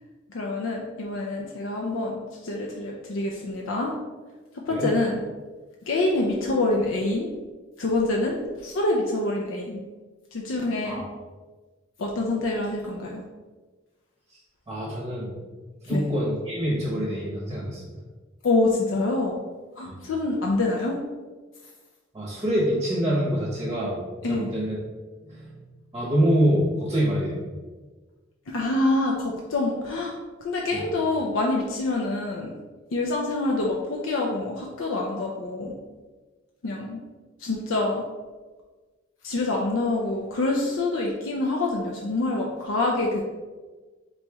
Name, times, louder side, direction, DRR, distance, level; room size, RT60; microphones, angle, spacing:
voice 1, 0.3-3.9 4.5-5.2 5.9-7.3 7.8-9.8 10.3-11.0 12.0-13.2 15.8-16.0 18.4-19.3 19.8-21.0 24.2-24.5 28.5-30.1 30.4-32.5 32.9-35.7 36.6-37.0 37.4-38.0 39.2-43.2, left 2 dB, 85° left, -1 dB, 0.5 m, -26 dB
voice 2, 14.7-15.3 15.8-17.8 19.8-20.0 22.1-24.0 24.2-24.8 25.3-25.5 25.9-27.4 30.7-30.8, equal, 20° right, -4 dB, 0.8 m, -25 dB
4.1 x 3.1 x 3.4 m, 1.3 s
head